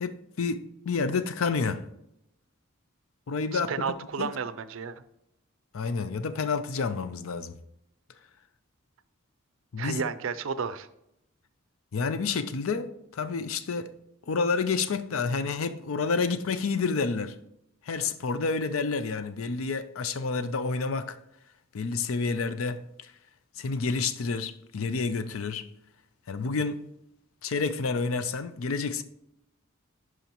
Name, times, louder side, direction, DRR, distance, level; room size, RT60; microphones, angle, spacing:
voice 1, 0.0-1.9 3.3-4.3 5.7-7.6 9.7-10.0 11.9-13.9 14.3-17.3 17.9-21.1 21.7-23.1 23.6-25.7 26.3-26.8 27.4-29.0, left 4 dB, 75° left, 0.5 m, -29 dB
voice 2, 3.5-5.0 9.8-10.9, right 5 dB, 65° right, 0.4 m, -32 dB
10.5 x 5.0 x 3.0 m
head